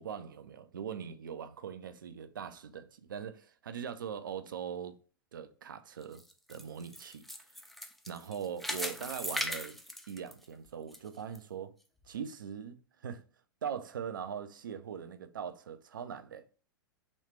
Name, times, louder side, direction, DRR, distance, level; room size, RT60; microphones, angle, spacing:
voice 1, 0.0-5.0 5.3-6.2 6.5-7.2 8.1-9.8 10.1-11.7 12.1-13.2 13.6-16.5, right 7 dB, 65° right, 0.4 m, -41 dB
sound 1, 6.0-11.0 11.4-11.5 12.0-12.1, left 1 dB, ahead, 0.3 m, -39 dB
3.1 x 3.1 x 3.1 m
figure-of-eight pair, 95°, 12 cm